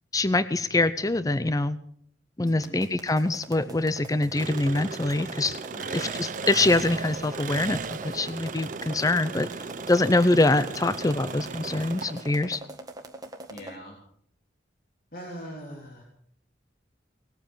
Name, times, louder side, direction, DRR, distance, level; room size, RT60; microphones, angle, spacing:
voice 1, 0.1-1.8 2.4-5.6 5.9-9.5 9.9-12.6, left 2 dB, 20° left, 13 dB, 0.5 m, -24 dB
voice 2, 2.4-2.8 5.7-6.1 13.5-14.0 15.1-16.0, equal, 55° left, -2 dB, 3.5 m, -41 dB
sound 1, 2.5-13.7, right 2 dB, 20° right, 1.7 m, -42 dB
Engine, 4.4-12.5, right 5 dB, 45° right, 0.6 m, -36 dB
19.5 x 8.9 x 7.3 m, 0.65 s
head